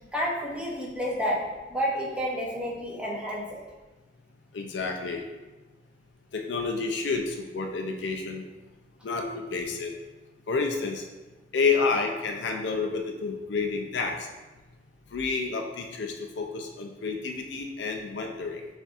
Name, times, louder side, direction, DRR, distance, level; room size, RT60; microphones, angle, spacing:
voice 1, 0.1-3.6, equal, 5° right, -4 dB, 0.8 m, -30 dB
voice 2, 4.5-5.2 6.3-8.4 9.0-9.9 10.5-11.0 11.5-14.2 15.1-18.6, left 4 dB, 75° left, 3 dB, 0.5 m, -29 dB
7.0 x 2.6 x 2.5 m, 1.2 s
head